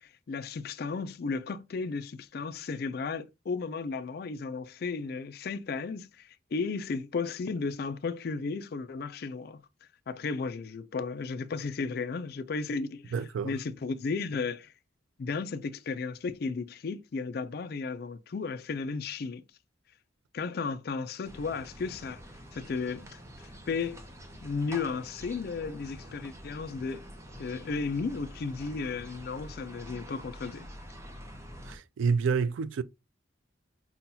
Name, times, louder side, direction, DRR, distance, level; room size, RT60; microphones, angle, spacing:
voice 1, 0.0-9.6 10.1-13.1 13.4-14.7 15.2-19.4 20.3-22.2 22.5-23.2 23.7-24.0 24.4-27.1 27.4-30.7, left 4 dB, 55° left, 0.4 m, -34 dB
voice 2, 13.1-13.6 31.7-32.8, right 5 dB, 85° right, 0.3 m, -28 dB
sound 1, 21.2-31.8, equal, 15° right, 0.6 m, -47 dB
5.6 x 2.2 x 2.7 m
head